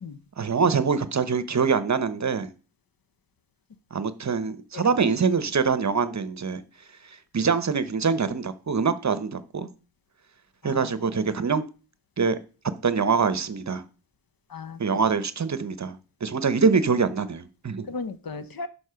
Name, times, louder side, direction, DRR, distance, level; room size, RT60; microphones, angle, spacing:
voice 1, 0.4-2.5 3.9-6.6 7.0-9.7 10.6-11.6 12.2-12.4 12.8-13.8 14.8-17.9, right 5 dB, 40° right, 0.8 m, -24 dB
voice 2, 10.6-10.9 14.5-15.1 17.9-18.7, left 4 dB, 55° left, 0.9 m, -36 dB
11.5 x 4.4 x 5.7 m
wide cardioid pair, 115°, 41 cm